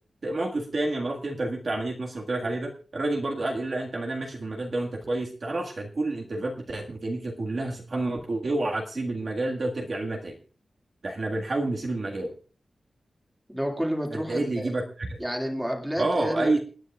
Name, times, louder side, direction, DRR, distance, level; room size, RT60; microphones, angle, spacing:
voice 1, 0.2-10.4 11.0-12.3 14.1-15.2 16.0-16.6, right 2 dB, 45° right, -1 dB, 1.7 m, -29 dB
voice 2, 13.5-14.7 15.2-16.6, equal, 5° right, 1 dB, 2.2 m, -30 dB
28.5 x 9.6 x 2.4 m, 0.39 s
wide cardioid pair, 175°, 0 cm